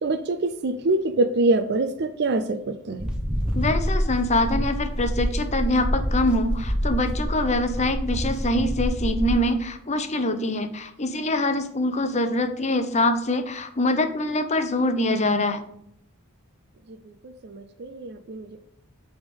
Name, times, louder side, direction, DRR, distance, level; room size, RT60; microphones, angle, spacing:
voice 1, 0.0-3.1 17.4-18.6, right 2 dB, 50° right, 0.5 m, -25 dB
sound 1, 3.0-9.4, equal, 5° right, 1.1 m, -26 dB
voice 2, 3.5-15.6, left 1 dB, 30° left, 0.8 m, -24 dB
8.5 x 3.6 x 5.2 m
head